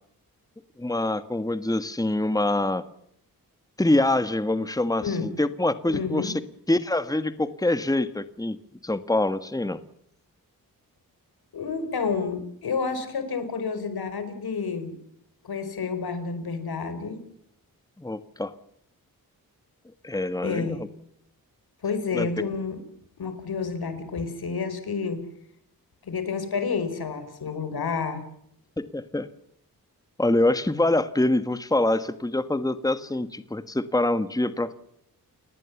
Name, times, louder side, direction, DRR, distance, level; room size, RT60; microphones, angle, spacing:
voice 1, 0.8-2.8 3.8-6.3 6.7-8.6 8.8-9.8 18.0-18.5 20.0-20.9 22.1-22.3 28.8-29.3 30.2-34.7, left 2 dB, 10° left, 12 dB, 1.5 m, -25 dB
voice 2, 5.9-6.3 11.5-14.9 15.4-17.2 20.4-20.8 21.8-22.8 23.2-25.2 26.0-28.2, left 5 dB, 85° left, 10 dB, 4.7 m, -29 dB
30.0 x 19.0 x 7.2 m, 0.72 s
wide cardioid pair, 85°, 36 cm